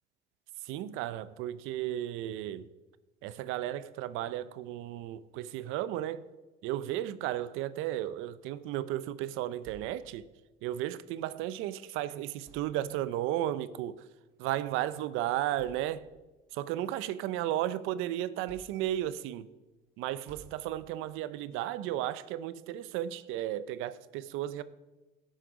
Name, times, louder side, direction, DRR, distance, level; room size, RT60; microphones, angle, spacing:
voice 1, 0.6-2.7 3.2-6.3 6.6-10.3 10.6-14.1 14.4-16.1 16.5-19.5 20.0-24.6, right 13 dB, 80° right, 0.5 m, -34 dB
sound 1, 9.6-10.5 11.7-11.9 12.4-13.2 14.3-14.5 15.0-15.1 15.5-16.3 16.8-17.9 18.5-19.3 20.3-21.2, right 5 dB, 55° right, 2.3 m, -57 dB
12.5 x 6.5 x 5.1 m
cardioid pair, 135°, 21 cm